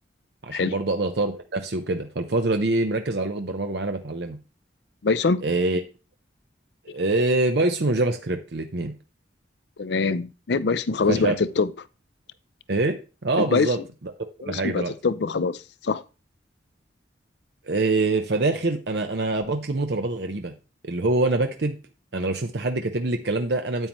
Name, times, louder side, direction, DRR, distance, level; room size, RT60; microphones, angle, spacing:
voice 1, 0.4-4.4 5.4-5.8 6.9-8.9 11.1-11.4 12.7-13.8 14.4-14.9 17.7-20.5 20.8-21.8 22.1-23.9, right 2 dB, 60° right, 0.8 m, -25 dB
voice 2, 5.0-5.4 9.8-11.7 13.4-13.7 14.4-16.0, left 4 dB, 65° left, 0.5 m, -24 dB
9.0 x 8.8 x 3.1 m
head